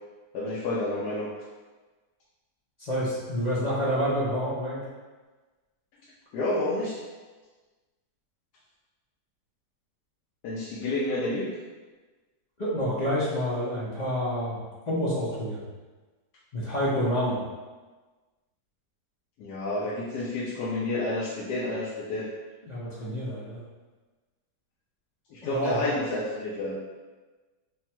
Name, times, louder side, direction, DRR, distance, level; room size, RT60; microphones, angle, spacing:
voice 1, 0.3-1.3 6.3-7.0 10.4-11.5 19.4-22.3 25.3-26.8, left 2 dB, 75° left, -6 dB, 1.2 m, -30 dB
voice 2, 2.8-4.8 12.6-14.6 14.9-15.6 16.5-17.5 22.7-23.6 25.4-25.9, equal, 55° left, -8 dB, 0.4 m, -28 dB
3.4 x 2.1 x 4.3 m, 1.3 s
omnidirectional pair, 1.8 m